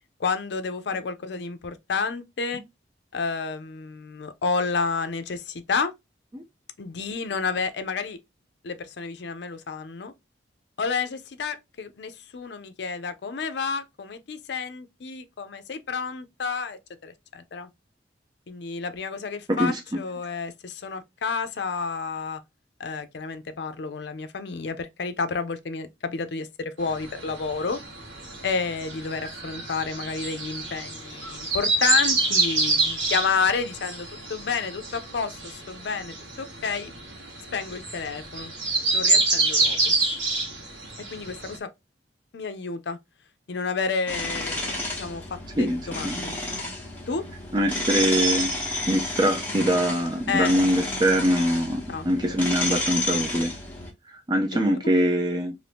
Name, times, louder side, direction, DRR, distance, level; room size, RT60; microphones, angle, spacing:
voice 1, 0.2-2.6 3.1-5.9 6.8-8.2 8.6-10.1 10.8-17.7 18.5-22.4 22.8-27.8 28.4-36.9 37.5-38.5 38.9-39.9 41.1-41.7 42.3-43.0 43.5-46.4 47.1-47.2 50.3-50.5 51.9-52.4, left 5 dB, 65° left, 0.5 m, -30 dB
voice 2, 19.5-20.0 45.6-46.2 47.5-48.5 48.9-53.5 54.3-55.5, equal, 25° right, 0.4 m, -23 dB
sound 1, 26.8-41.6, right 3 dB, 90° right, 1.2 m, -27 dB
sound 2, 44.1-53.9, left 1 dB, 10° left, 0.9 m, -31 dB
2.6 x 2.6 x 3.4 m
head